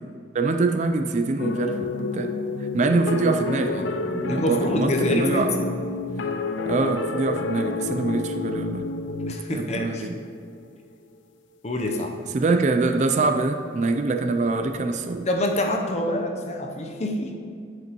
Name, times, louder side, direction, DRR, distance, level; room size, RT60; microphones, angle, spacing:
voice 1, 0.3-2.3 2.7-5.5 6.7-8.9 9.5-10.1 12.3-15.3, right 3 dB, 40° right, 7 dB, 0.4 m, -24 dB
sound 1, 1.4-10.6, left 3 dB, 80° left, 0.4 m, -29 dB
voice 2, 4.3-5.6 9.3-10.1 11.6-12.1 15.3-17.3, left 1 dB, 35° left, 3 dB, 0.7 m, -26 dB
11.0 x 5.2 x 3.0 m, 2.2 s
head